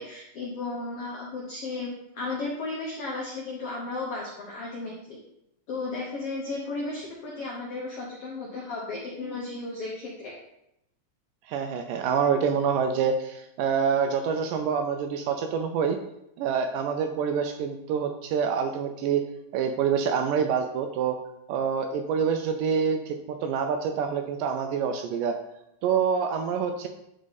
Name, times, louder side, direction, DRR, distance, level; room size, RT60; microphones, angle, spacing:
voice 1, 0.0-5.2 5.7-10.3, left 3 dB, 75° left, -3 dB, 1.3 m, -34 dB
voice 2, 11.5-16.0 16.4-19.2 19.5-21.2 21.5-25.3 25.8-26.9, right 6 dB, 80° right, 6 dB, 2.0 m, -26 dB
10.5 x 3.7 x 4.0 m, 0.83 s
omnidirectional pair, 4.2 m